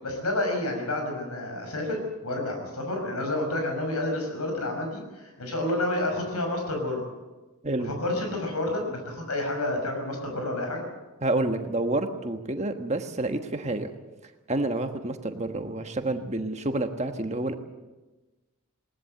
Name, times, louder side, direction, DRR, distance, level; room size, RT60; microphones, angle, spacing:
voice 1, 0.0-7.0 7.8-10.8, left 1 dB, 90° left, 3 dB, 6.0 m, -29 dB
voice 2, 11.2-13.9 14.5-17.6, right 2 dB, 30° right, 6 dB, 1.4 m, -29 dB
20.0 x 19.0 x 7.8 m, 1.2 s
head